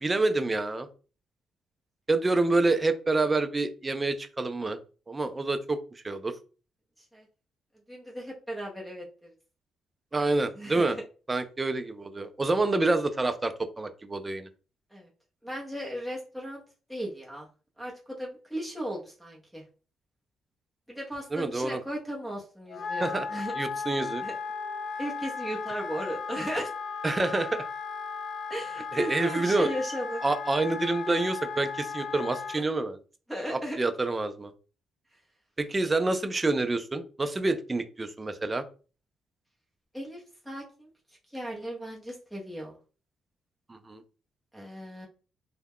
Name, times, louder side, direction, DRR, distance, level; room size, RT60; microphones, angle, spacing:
voice 1, 0.0-0.9 2.1-4.8 5.1-5.8 6.0-6.3 10.1-11.0 11.3-14.5 21.3-21.8 23.0-23.3 23.5-24.2 27.0-27.7 28.9-29.7 30.2-33.0 33.5-34.5 35.6-38.7 43.7-44.0, right 2 dB, 20° right, 8 dB, 0.4 m, -27 dB
voice 2, 7.9-9.3 10.6-11.0 14.9-15.1 15.4-16.6 16.9-17.5 17.8-19.6 20.9-23.5 24.2-24.3 25.0-26.7 28.5-30.2 33.3-33.8 39.9-40.9 41.3-42.8 44.5-45.1, equal, ahead, -3 dB, 0.8 m, -36 dB
Wind instrument woodwind instrument, 22.7-32.6, left 5 dB, 50° left, 0.4 m, -36 dB
2.2 x 2.1 x 3.5 m, 0.36 s
cardioid pair, 90°, 0 cm